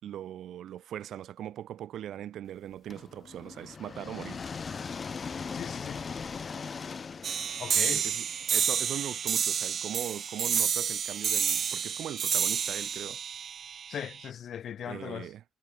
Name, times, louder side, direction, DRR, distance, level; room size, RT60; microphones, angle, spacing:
voice 1, 0.0-4.6 7.9-13.2 14.9-15.4, right 11 dB, 75° right, 3.1 m, -40 dB
sound 1, 2.9-8.8, left 5 dB, 40° left, 0.9 m, -39 dB
voice 2, 5.5-6.0 7.6-8.0 13.9-15.3, left 9 dB, 65° left, 1.5 m, -38 dB
sound 2, 7.2-14.3, right 7 dB, 55° right, 1.8 m, -30 dB
cardioid pair, 90°, 0 cm